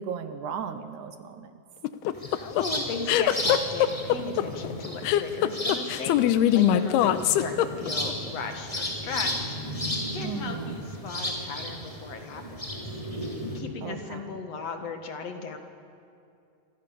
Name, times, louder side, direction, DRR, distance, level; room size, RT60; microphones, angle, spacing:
voice 1, 0.0-1.5 10.2-10.8 13.8-14.4, right 7 dB, 70° right, 10 dB, 2.0 m, -36 dB
sound 1, 1.8-8.1, left 12 dB, 90° left, 2.9 m, -22 dB
sound 2, 2.1-13.6, left 1 dB, 10° left, 2.8 m, -34 dB
voice 2, 2.2-6.2 6.5-12.9 13.4-15.6, left 4 dB, 50° left, 5 dB, 2.5 m, -36 dB
28.5 x 24.5 x 6.8 m, 2.6 s
omnidirectional pair, 4.5 m